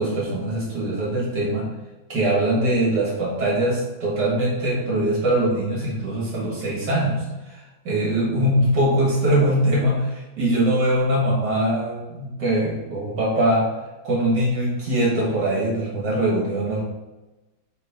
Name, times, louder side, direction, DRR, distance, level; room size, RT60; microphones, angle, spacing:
voice 1, 0.0-1.7 2.1-13.7 14.0-16.8, right 1 dB, 75° right, -4 dB, 2.5 m, -22 dB
7.3 x 3.1 x 4.2 m, 1.1 s
omnidirectional pair, 1.8 m